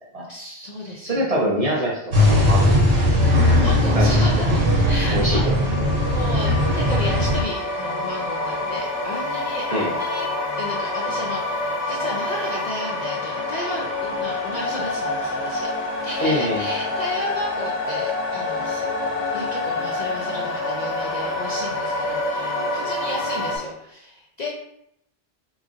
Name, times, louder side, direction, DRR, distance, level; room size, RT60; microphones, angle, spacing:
voice 1, 0.3-1.3 3.4-5.6 6.0-10.3 10.6-15.7 16.0-18.9 19.3-24.5, left 1 dB, 55° left, -3 dB, 0.5 m, -33 dB
voice 2, 1.0-2.9 3.5-3.6 3.9-4.1 4.4-4.5 5.1-5.5 9.7-9.9 16.2-16.6, equal, 40° right, -4 dB, 0.7 m, -24 dB
sound 1, 2.1-7.4, left 1 dB, 80° right, 1.3 m, -18 dB
sound 2, 5.4-23.6, left 2 dB, 75° left, 1.3 m, -27 dB
3.7 x 3.0 x 2.5 m, 0.76 s
omnidirectional pair, 1.1 m